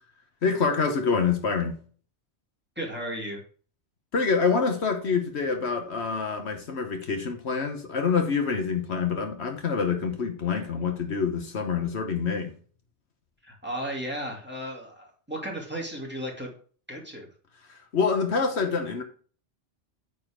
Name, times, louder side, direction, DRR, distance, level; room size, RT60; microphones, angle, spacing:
voice 1, 0.4-1.8 4.1-12.5 17.7-19.0, left 5 dB, 70° left, 1.3 m, -26 dB
voice 2, 2.8-3.4 13.4-16.5 16.9-17.3, equal, 10° right, 2.4 m, -34 dB
9.1 x 4.2 x 5.0 m
omnidirectional pair, 1.2 m